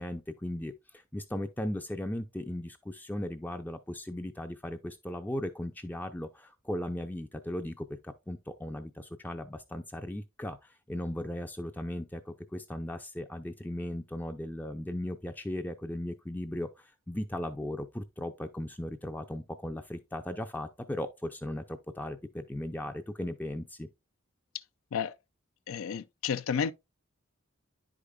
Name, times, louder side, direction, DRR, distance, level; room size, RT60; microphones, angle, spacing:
voice 1, 0.0-23.9, left 1 dB, 10° left, 0.4 m, -37 dB
voice 2, 25.7-26.7, left 7 dB, 75° left, 0.4 m, -31 dB
10.0 x 5.0 x 2.2 m
head